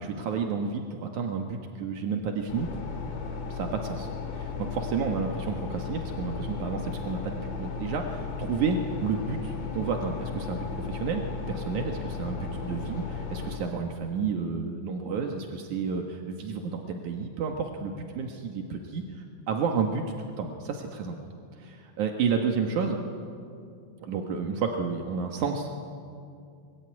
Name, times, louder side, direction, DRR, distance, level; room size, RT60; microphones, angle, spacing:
voice 1, 0.0-2.7 3.5-21.2 21.6-23.0 24.0-25.9, right 5 dB, 65° right, 3 dB, 2.0 m, -31 dB
sound 1, 2.5-13.6, left 5 dB, 70° left, 4.9 m, -35 dB
24.5 x 23.5 x 9.7 m, 2.5 s
omnidirectional pair, 5.4 m